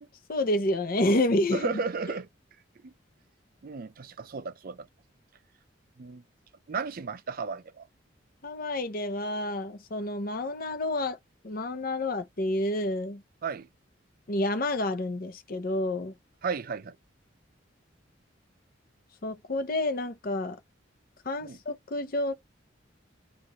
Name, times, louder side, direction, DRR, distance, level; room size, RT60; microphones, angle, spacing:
voice 1, 0.3-1.8 8.4-11.2 11.4-13.2 14.3-16.1 19.2-20.6 21.3-22.3, left 1 dB, 50° left, 0.7 m, -29 dB
voice 2, 1.5-2.3 2.8-2.9 3.6-4.9 6.0-6.2 6.7-7.8 13.4-13.7 16.4-16.9 21.4-21.6, right 5 dB, 50° right, 0.5 m, -34 dB
3.0 x 2.5 x 3.9 m
head